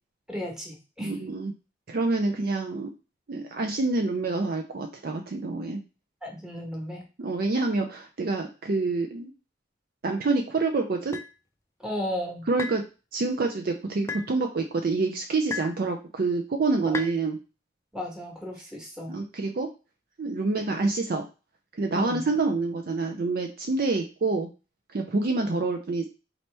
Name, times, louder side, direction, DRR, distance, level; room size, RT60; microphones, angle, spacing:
voice 1, 0.3-1.1 6.2-7.0 11.8-12.5 16.8-17.0 17.9-19.1 21.9-22.2, left 1 dB, 5° right, -2 dB, 1.1 m, -34 dB
voice 2, 1.0-1.5 1.9-2.9 3.3-5.8 7.2-9.3 10.0-11.2 12.5-17.4 19.1-19.7 20.2-21.3 21.8-24.5 24.9-26.1, right 3 dB, 55° right, 4 dB, 0.5 m, -27 dB
sound 1, 11.1-11.3 12.6-12.8 14.1-14.3 15.5-15.8 16.9-17.2, left 3 dB, 15° left, 0.5 m, -33 dB
4.1 x 2.9 x 3.3 m, 0.31 s
head